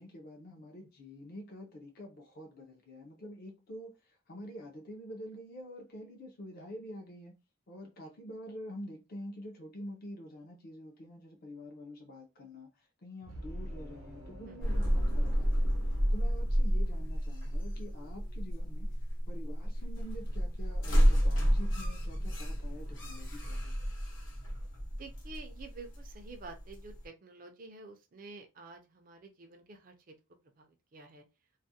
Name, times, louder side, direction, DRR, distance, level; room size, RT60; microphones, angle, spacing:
voice 1, 0.0-7.3 7.7-15.8 16.1-18.9 19.3-23.9, equal, 45° left, 0.5 m, -47 dB
sound 1, 13.2-16.7, equal, 90° right, 0.7 m, -47 dB
sound 2, 14.6-27.0, equal, 65° left, 0.8 m, -30 dB
voice 2, 24.9-30.1 30.6-31.3, right 3 dB, 40° right, 0.4 m, -50 dB
2.4 x 2.0 x 2.6 m
head